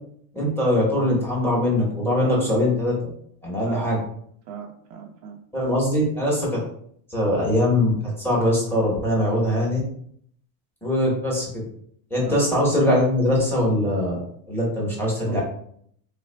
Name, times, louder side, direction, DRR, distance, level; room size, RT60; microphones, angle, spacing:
voice 1, 0.3-3.0 3.4-4.0 5.5-6.6 7.1-9.8 10.8-11.6 12.1-14.2 14.5-15.4, left 1 dB, 5° left, -5 dB, 1.0 m, -22 dB
voice 2, 4.5-5.4 12.2-12.4 15.3-15.4, right 6 dB, 55° right, 1 dB, 0.6 m, -37 dB
3.4 x 2.4 x 3.2 m, 0.64 s
cardioid pair, 150°, 41 cm